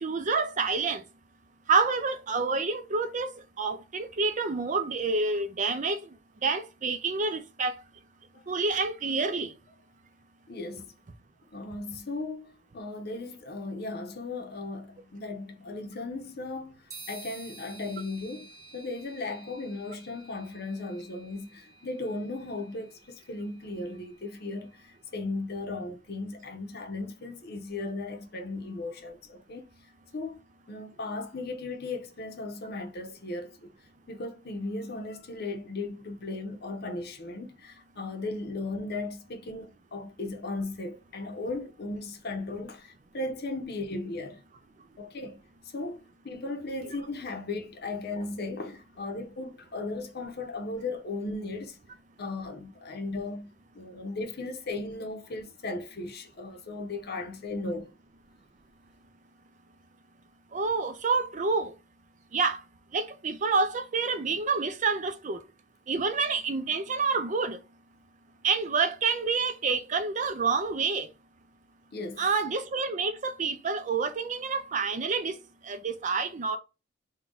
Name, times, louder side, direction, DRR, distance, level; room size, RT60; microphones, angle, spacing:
voice 1, 0.0-1.0 1.7-3.3 3.6-6.0 6.4-7.7 8.5-9.5 60.5-61.7 62.3-62.6 62.9-65.4 65.9-67.6 68.4-71.1 72.2-75.3 75.7-76.6, right 4 dB, 40° right, 0.5 m, -28 dB
voice 2, 10.5-10.9 11.5-29.7 30.1-30.4 30.7-33.7 34.1-44.4 45.0-45.4 45.7-51.8 52.2-57.9 71.9-72.3, left 2 dB, 55° left, 0.8 m, -36 dB
sound 1, 16.9-24.6, right 3 dB, 20° right, 1.5 m, -51 dB
3.7 x 2.3 x 3.7 m
head